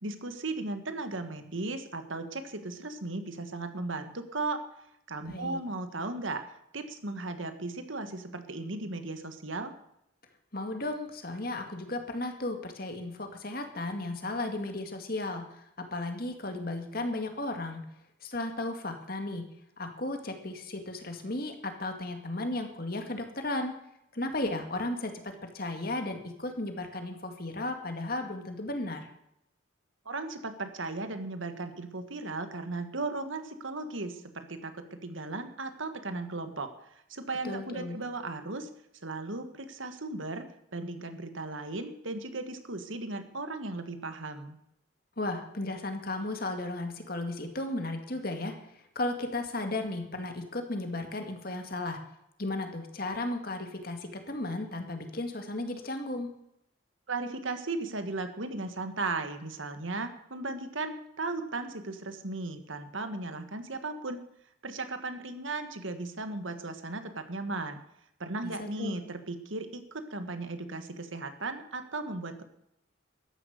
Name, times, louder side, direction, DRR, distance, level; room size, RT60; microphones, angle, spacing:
voice 1, 0.0-4.6 5.1-6.4 6.7-9.7 30.0-36.7 37.1-38.7 39.0-44.6 57.1-64.2 64.6-67.8 68.2-72.4, right 2 dB, 70° right, 8 dB, 1.7 m, -36 dB
voice 2, 5.3-5.6 10.5-17.8 18.2-19.5 19.8-23.8 24.1-29.1 37.4-38.0 45.2-52.0 52.4-56.3 68.4-69.0, left 2 dB, 45° left, 5 dB, 2.1 m, -35 dB
13.5 x 11.0 x 6.7 m, 0.78 s
head